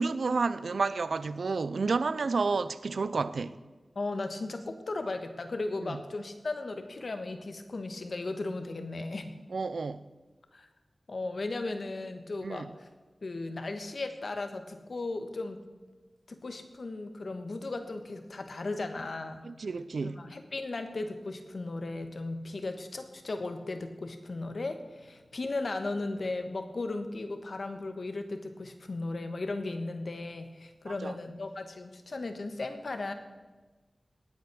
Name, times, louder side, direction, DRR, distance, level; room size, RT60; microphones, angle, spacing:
voice 1, 0.0-3.5 5.8-6.0 9.5-10.1 12.4-12.7 19.4-20.2 30.9-31.1, right 4 dB, 85° right, 0.5 m, -30 dB
voice 2, 3.9-9.3 10.5-10.7 11.1-12.9 13.2-15.6 16.3-19.4 20.0-33.1, left 2 dB, 70° left, 1.4 m, -36 dB
19.0 x 8.3 x 6.2 m
wide cardioid pair, 55°, 0 cm